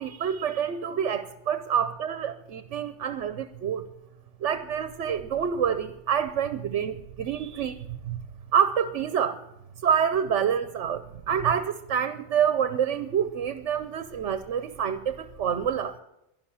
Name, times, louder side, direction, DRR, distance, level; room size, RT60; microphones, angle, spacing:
voice 1, 0.0-3.8 4.4-8.2 8.5-9.4 9.8-16.0, right 8 dB, 85° right, 11 dB, 1.1 m, -27 dB
11.5 x 11.5 x 9.8 m, 0.88 s
omnidirectional pair, 1.2 m